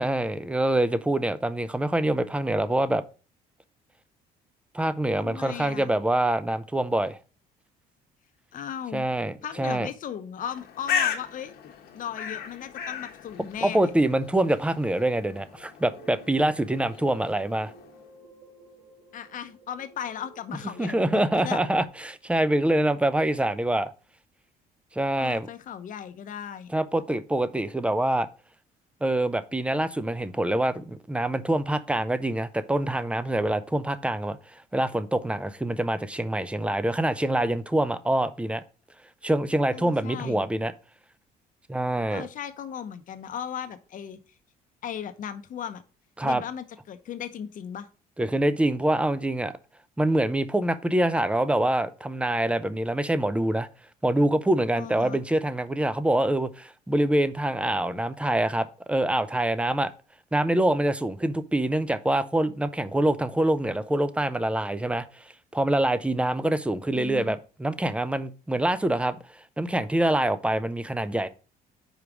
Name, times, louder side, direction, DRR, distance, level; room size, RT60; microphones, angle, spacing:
voice 1, 0.0-3.0 4.7-7.2 8.9-9.9 13.6-17.7 20.8-23.9 24.9-25.5 26.7-28.3 29.0-38.6 39.2-40.7 41.7-42.3 46.2-46.4 48.2-49.5 50.0-53.7 54.0-59.9 60.3-65.2 65.5-69.2 69.6-71.3, right 1 dB, 5° right, 0.5 m, -25 dB
voice 2, 5.2-6.0 8.5-9.1 9.4-11.5 11.9-13.9 19.1-21.6 25.2-26.7 39.7-40.5 42.1-44.2 44.8-45.8 46.2-47.9 54.8-55.2 66.9-67.4, left 8 dB, 50° left, 0.8 m, -37 dB
Bird, 10.4-18.0, left 7 dB, 70° left, 1.2 m, -35 dB
sound 1, 15.8-21.9, right 2 dB, 65° right, 2.9 m, -52 dB
5.1 x 4.8 x 6.0 m
cardioid pair, 110°, 17 cm